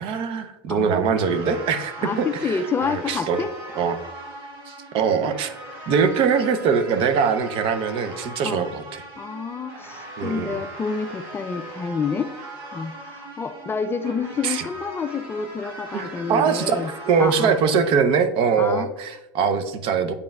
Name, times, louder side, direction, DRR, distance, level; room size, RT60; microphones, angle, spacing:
voice 1, 0.0-3.4 3.8-4.0 4.7-5.5 5.9-9.0 10.2-10.5 14.4-14.6 15.9-16.8 17.1-20.1, right 6 dB, 50° right, 9 dB, 0.6 m, -22 dB
voice 2, 0.7-1.0 2.0-3.5 8.4-8.7 9.2-12.3 12.7-16.9 17.2-17.5 18.6-18.9, left 5 dB, 20° left, 9 dB, 0.4 m, -28 dB
sound 1, 1.2-17.9, right 1 dB, 75° right, 1.8 m, -39 dB
8.2 x 5.2 x 2.3 m, 0.97 s
supercardioid pair, 105°, 12 cm